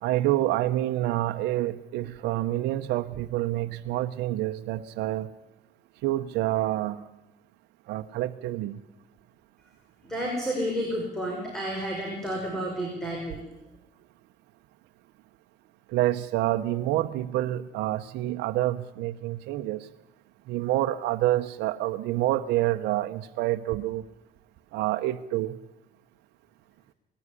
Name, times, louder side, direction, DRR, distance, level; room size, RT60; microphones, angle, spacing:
voice 1, 0.0-5.3 6.0-7.0 7.9-8.8 15.9-19.9 20.5-24.0 24.7-25.5, right 15 dB, 85° right, 8 dB, 0.8 m, -27 dB
voice 2, 10.0-13.4, equal, 5° left, -1 dB, 5.7 m, -31 dB
20.0 x 15.5 x 9.8 m, 0.91 s
cardioid pair, 110°, 17 cm